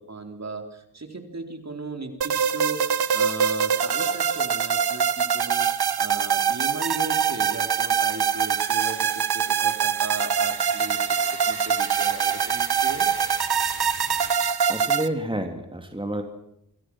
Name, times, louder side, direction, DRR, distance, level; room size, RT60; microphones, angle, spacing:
voice 1, 0.1-11.0 11.3-13.3, right 3 dB, 40° right, 5 dB, 4.0 m, -37 dB
sound 1, 2.2-15.1, right 7 dB, 70° right, 1.3 m, -24 dB
sound 2, 6.3-14.3, left 5 dB, 65° left, 4.0 m, -45 dB
voice 2, 14.7-16.2, right 1 dB, 10° right, 5 dB, 3.1 m, -29 dB
28.0 x 23.0 x 6.4 m, 0.76 s
wide cardioid pair, 80°, 40 cm